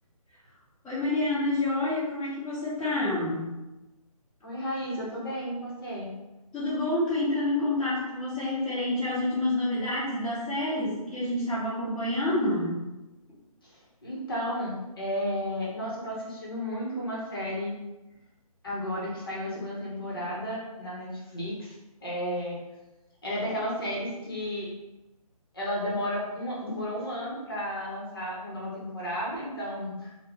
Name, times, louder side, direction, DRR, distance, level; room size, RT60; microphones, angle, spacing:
voice 1, 0.8-3.5 6.5-12.8, left 1 dB, 5° left, -18 dB, 0.9 m, -28 dB
voice 2, 4.4-6.1 13.6-17.7 18.6-22.6 23.2-24.7 25.5-30.3, equal, 40° left, -5 dB, 0.8 m, -33 dB
3.1 x 2.1 x 3.5 m, 1.0 s
hypercardioid pair, 170°, 19 cm